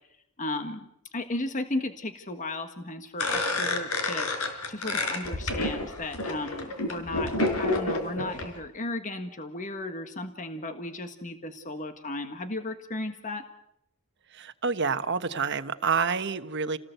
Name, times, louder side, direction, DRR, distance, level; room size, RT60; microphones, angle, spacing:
voice 1, 0.4-0.9 1.1-13.4, left 2 dB, 35° left, 8 dB, 1.6 m, -35 dB
sound 1, 3.2-8.5, left 2 dB, 75° left, 5.0 m, -29 dB
voice 2, 14.3-16.8, right 5 dB, 50° right, 10 dB, 1.2 m, -28 dB
29.5 x 19.0 x 8.0 m, 0.81 s
head